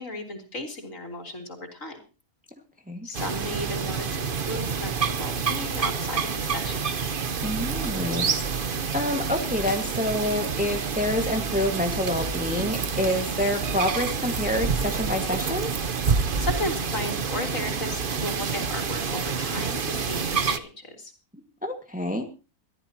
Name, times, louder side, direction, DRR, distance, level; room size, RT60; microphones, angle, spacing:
voice 1, 0.0-2.0 3.0-7.1 16.4-21.1, left 2 dB, 55° left, 3 dB, 3.8 m, -35 dB
sound 1, 3.1-20.6, right 5 dB, 40° right, 1.0 m, -28 dB
voice 2, 7.4-15.7 21.6-22.2, left 1 dB, 5° right, 4 dB, 1.7 m, -27 dB
23.0 x 14.0 x 2.9 m, 0.33 s
omnidirectional pair, 1.6 m